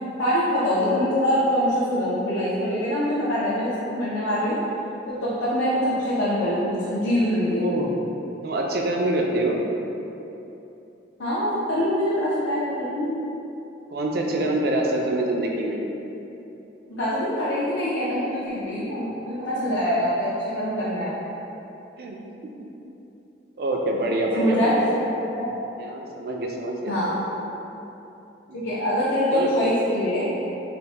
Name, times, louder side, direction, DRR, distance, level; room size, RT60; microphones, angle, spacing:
voice 1, 0.2-4.6 5.1-7.8 11.2-13.2 16.8-21.1 24.4-25.6 26.9-27.1 28.5-30.2, equal, 90° left, -10 dB, 0.6 m, -24 dB
voice 2, 7.5-7.9 8.4-9.6 13.9-15.8 22.0-22.2 22.4-22.6 23.6-24.9 25.8-27.4 28.5-28.7 29.3-29.5, right 1 dB, 50° right, 0 dB, 0.4 m, -26 dB
3.8 x 2.1 x 3.3 m, 2.9 s
head